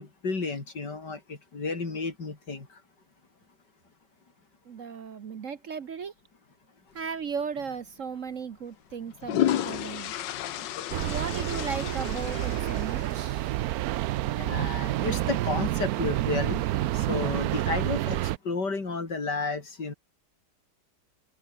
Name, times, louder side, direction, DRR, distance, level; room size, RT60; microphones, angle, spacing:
voice 1, 0.0-2.7 14.3-16.6 16.9-18.2 18.4-19.9, left 3 dB, 70° left, 4.4 m, -32 dB
voice 2, 4.7-6.1 6.9-10.1 11.0-13.6, right 6 dB, 50° right, 1.2 m, -36 dB
sound 1, 7.6-7.8 8.9-13.5, left 12 dB, 90° left, 1.6 m, -32 dB
sound 2, 10.9-18.4, right 15 dB, 70° right, 0.9 m, -29 dB
open air
omnidirectional pair, 1.9 m